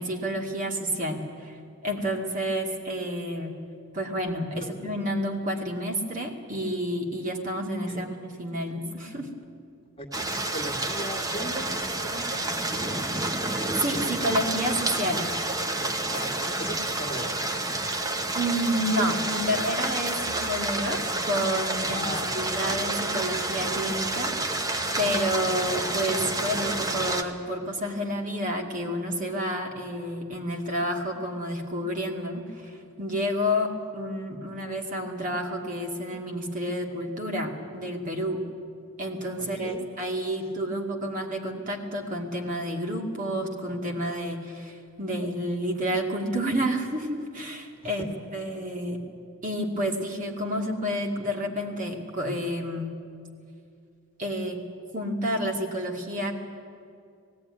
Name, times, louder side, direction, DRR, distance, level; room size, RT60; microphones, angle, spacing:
voice 1, 0.0-3.5 3.9-9.3 13.8-15.2 18.3-24.7 25.0-38.4 39.0-49.0 49.4-52.9 54.2-54.6 54.9-56.3, equal, 40° right, 1 dB, 2.3 m, -30 dB
voice 2, 10.0-13.1 16.1-17.4 21.9-22.6 39.4-39.8, equal, 30° left, 1 dB, 2.0 m, -39 dB
sound 1, 10.1-27.2, right 2 dB, 20° right, 1.0 m, -29 dB
18.5 x 16.5 x 9.8 m, 2.4 s
head